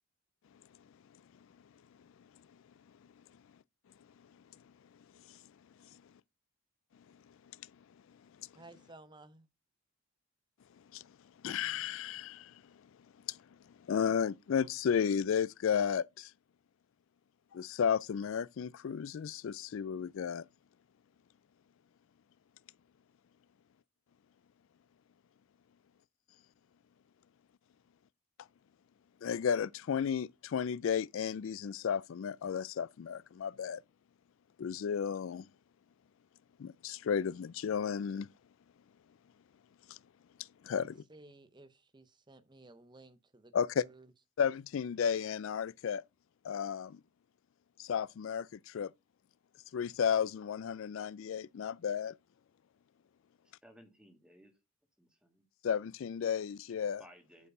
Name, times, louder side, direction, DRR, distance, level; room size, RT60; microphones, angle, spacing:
voice 1, 8.5-9.5 40.7-43.5 43.8-44.1, right 2 dB, 20° right, 0.7 m, -56 dB
voice 2, 11.4-12.5 13.3-13.4 13.9-16.3 17.5-20.5 29.2-33.8 34.6-35.5 36.6-38.3 39.9-40.0 40.6-41.0 43.5-43.8 44.4-46.0 46.4-47.0 47.8-48.9 49.7-52.1 55.6-57.0, left 7 dB, 70° left, 0.3 m, -33 dB
voice 3, 53.4-54.5 55.0-55.4 56.8-57.5, equal, 5° right, 1.6 m, -59 dB
8.3 x 4.6 x 5.4 m
head